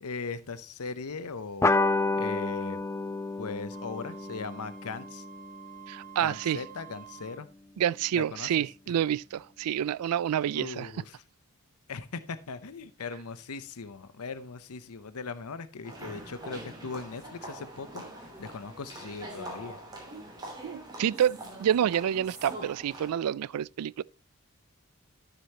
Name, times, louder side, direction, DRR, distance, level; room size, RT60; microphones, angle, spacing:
voice 1, 0.0-1.8 2.1-2.8 3.4-5.2 6.2-7.5 8.1-8.6 10.5-11.2 11.9-19.8, left 4 dB, 85° left, 0.7 m, -39 dB
sound 1, 1.6-6.5, left 3 dB, 10° left, 0.4 m, -30 dB
Wind instrument woodwind instrument, 3.7-7.4, right 10 dB, 35° right, 0.9 m, -49 dB
voice 2, 5.9-6.6 7.8-10.9 20.6-24.0, right 9 dB, 90° right, 0.3 m, -28 dB
sound 2, 15.8-23.1, right 1 dB, 20° right, 2.8 m, -43 dB
12.5 x 6.9 x 2.9 m
head